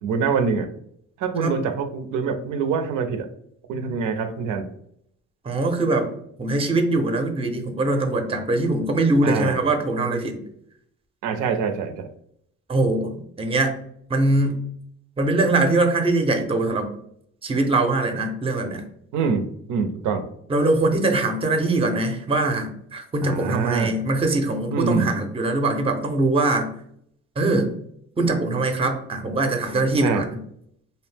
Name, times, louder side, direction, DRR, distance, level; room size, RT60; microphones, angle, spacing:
voice 1, 0.0-0.7 1.2-3.3 3.7-4.7 9.2-9.6 11.2-12.1 19.1-20.2 23.2-23.9 24.7-25.1 30.0-30.2, right 5 dB, 85° right, 6 dB, 0.5 m, -25 dB
voice 2, 5.4-6.1 6.4-10.4 12.7-13.8 14.1-14.6 15.2-16.9 17.4-18.9 20.5-26.7 27.4-27.7 28.2-30.4, right 2 dB, 20° right, 5 dB, 0.5 m, -22 dB
2.7 x 2.0 x 3.1 m, 0.70 s
cardioid pair, 90°, 30 cm